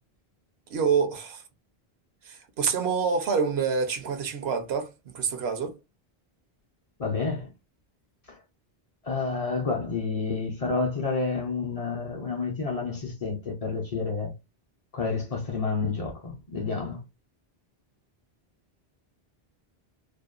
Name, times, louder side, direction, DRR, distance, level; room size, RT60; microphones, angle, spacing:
voice 1, 0.7-1.4 2.2-5.8, right 6 dB, 80° right, 0.9 m, -27 dB
voice 2, 7.0-7.5 9.0-14.3 14.9-17.0, left 4 dB, 45° left, 0.5 m, -29 dB
2.7 x 2.1 x 2.3 m
omnidirectional pair, 1.0 m